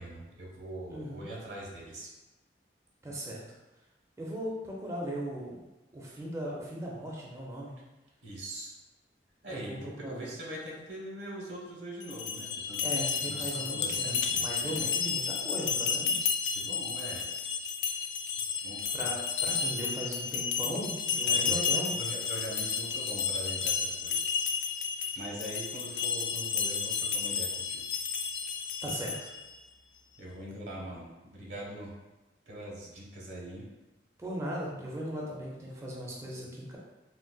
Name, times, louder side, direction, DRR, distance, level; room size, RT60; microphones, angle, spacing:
voice 1, 0.0-2.1 8.2-8.7 9.4-14.8 16.5-17.3 18.6-19.1 21.2-24.4 25.0-27.8 30.2-31.9 32.5-33.7, right 1 dB, 85° right, -2 dB, 0.9 m, -42 dB
voice 2, 0.9-1.3 3.0-3.4 4.2-5.6 5.9-7.7 9.5-10.4 12.8-16.2 18.9-22.0 28.8-29.2 34.2-36.8, right 1 dB, 15° right, -4 dB, 0.4 m, -38 dB
sound 1, 12.0-29.5, left 6 dB, 85° left, 0.3 m, -32 dB
3.7 x 2.2 x 2.2 m, 1.1 s
head